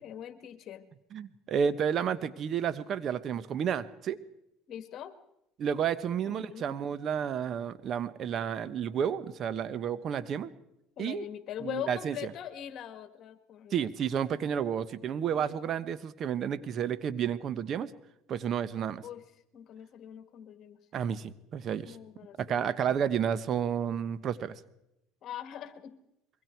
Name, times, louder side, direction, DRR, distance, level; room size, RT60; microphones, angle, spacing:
voice 1, 0.0-0.9 4.7-5.1 6.2-7.0 11.0-13.9 15.2-15.5 18.7-19.2 19.5-20.8 21.8-23.0 25.2-25.9, left 10 dB, 50° left, 11 dB, 2.0 m, -42 dB
voice 2, 1.1-4.2 5.6-10.5 11.0-11.2 11.6-12.3 13.7-17.9 18.3-19.0 20.9-22.0 22.4-24.6, right 8 dB, 50° right, 15 dB, 1.1 m, -31 dB
25.5 x 22.5 x 4.6 m, 0.85 s
supercardioid pair, 90°, 0 cm